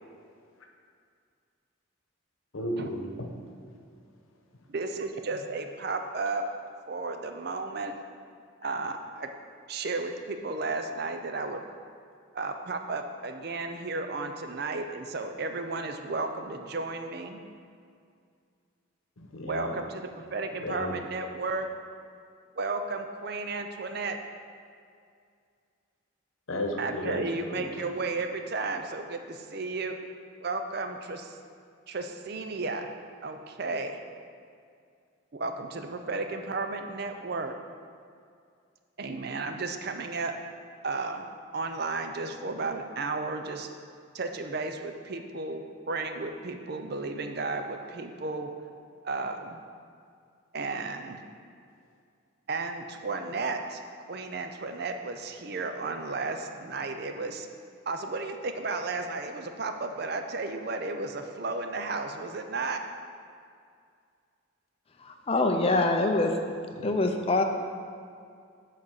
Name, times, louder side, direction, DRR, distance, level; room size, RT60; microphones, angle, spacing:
voice 1, 2.5-3.3 8.6-8.7 19.2-19.8 20.6-21.0 26.5-27.8 66.7-66.9, left 1 dB, 85° left, 2 dB, 0.9 m, -34 dB
voice 2, 4.7-6.4 6.9-8.0 8.6-9.3 9.7-11.6 12.3-17.4 19.5-21.7 22.6-24.2 26.8-30.0 30.4-31.4 31.9-32.9 33.2-34.0 35.3-37.6 39.0-40.3 40.8-41.2 41.5-43.7 44.1-48.5 49.0-49.6 50.5-51.2 52.5-53.8 54.1-57.5 57.9-62.8, right 3 dB, 50° right, 6 dB, 0.5 m, -33 dB
voice 3, 65.0-66.3 66.8-67.4, left 2 dB, 25° left, 4 dB, 0.5 m, -24 dB
7.4 x 4.1 x 6.3 m, 2.3 s
head